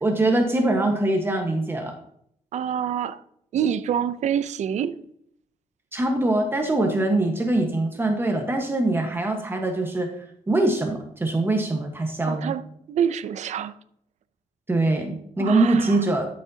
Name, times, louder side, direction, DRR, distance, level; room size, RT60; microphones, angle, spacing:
voice 1, 0.0-1.9 5.9-12.5 14.7-16.4, right 2 dB, 15° right, 1.3 m, -23 dB
voice 2, 2.5-3.2 3.5-5.0 12.3-12.6 12.9-13.7 15.4-16.0, right 8 dB, 60° right, 0.6 m, -26 dB
12.5 x 6.5 x 2.8 m
cardioid pair, 120°, 13 cm